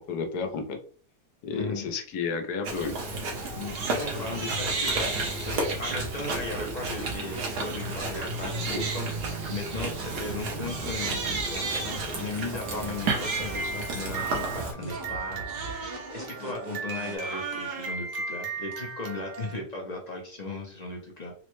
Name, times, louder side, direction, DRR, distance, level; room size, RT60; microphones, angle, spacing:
voice 1, 0.1-0.8 1.4-2.9, left 5 dB, 90° left, 5 dB, 1.2 m, -31 dB
voice 2, 1.5-1.9 3.6-9.1 9.5-21.3, left 2 dB, 50° left, 0 dB, 0.5 m, -37 dB
Chewing mastication, 2.6-14.7, right 2 dB, 80° right, 1.5 m, -33 dB
Crying sobbing, 3.4-4.0 4.3-6.4 6.8-7.1 7.6-19.6, right 4 dB, 60° right, 1.2 m, -35 dB
sound 1, 4.1-8.8 9.1-13.1 13.4-17.2, right 2 dB, 35° right, 0.8 m, -42 dB
3.9 x 2.1 x 3.0 m, 0.43 s
omnidirectional pair, 1.6 m